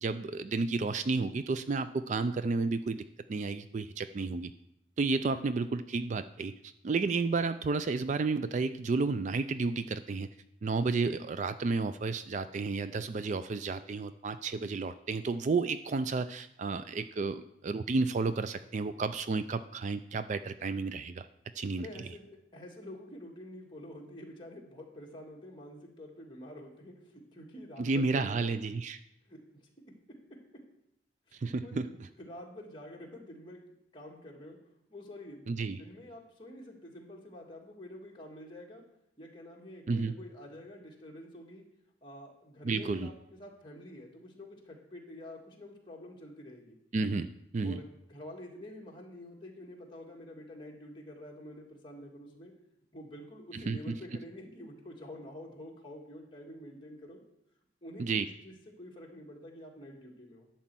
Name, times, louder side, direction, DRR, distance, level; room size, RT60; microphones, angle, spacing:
voice 1, 0.0-4.5 5.0-10.3 10.6-21.3 21.6-21.9 27.8-29.0 31.3-31.9 35.5-35.8 39.9-40.1 42.6-43.1 46.9-47.8 53.5-53.8 58.0-58.3, right 4 dB, 40° right, 12 dB, 0.3 m, -32 dB
voice 2, 21.8-28.5 29.3-29.7 30.1-30.4 31.3-31.8 32.2-33.6 33.9-34.6 34.9-38.8 39.2-41.6 42.0-46.8 47.6-52.5 52.9-57.2 57.8-60.5, left 1 dB, 25° left, -1 dB, 1.9 m, -48 dB
11.5 x 4.4 x 7.5 m, 0.82 s
head